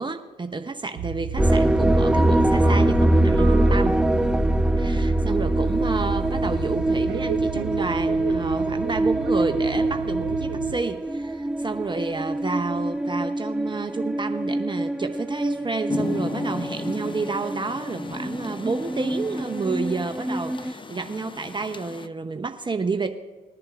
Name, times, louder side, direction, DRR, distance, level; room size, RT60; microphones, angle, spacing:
voice 1, 0.0-4.0 4.8-23.1, right 4 dB, 25° right, 6 dB, 0.9 m, -30 dB
sound 1, 1.0-10.8, right 7 dB, 75° right, 0.6 m, -33 dB
sound 2, 1.4-20.7, right 1 dB, 5° right, 0.3 m, -24 dB
Rain, 15.9-22.1, left 4 dB, 25° left, 0.7 m, -36 dB
21.0 x 10.5 x 2.5 m, 1.3 s
hypercardioid pair, 55°, 19 cm